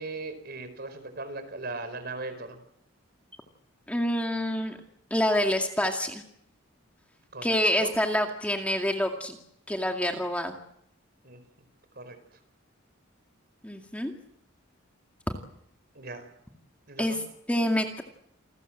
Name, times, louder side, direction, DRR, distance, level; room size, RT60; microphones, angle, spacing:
voice 1, 0.0-2.6 7.3-7.9 11.2-11.4 11.9-12.2 15.9-16.2 16.9-17.2, right 2 dB, 50° right, 10 dB, 4.9 m, -38 dB
voice 2, 3.9-4.8 5.1-6.2 7.4-9.4 9.7-10.6 13.6-14.1 15.3-15.4 17.0-17.2 17.5-18.0, left 1 dB, 5° left, 3 dB, 2.1 m, -27 dB
28.5 x 19.5 x 7.9 m, 0.74 s
head